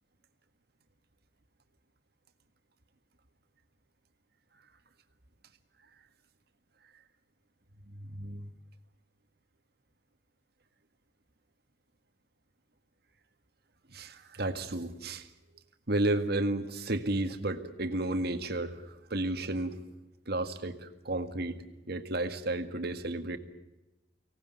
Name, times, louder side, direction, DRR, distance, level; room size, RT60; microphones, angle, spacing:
voice 1, 7.9-8.5 13.9-15.3 15.9-19.8 20.3-23.4, right 2 dB, 60° right, 8 dB, 1.8 m, -32 dB
24.5 x 18.0 x 9.3 m, 1.0 s
head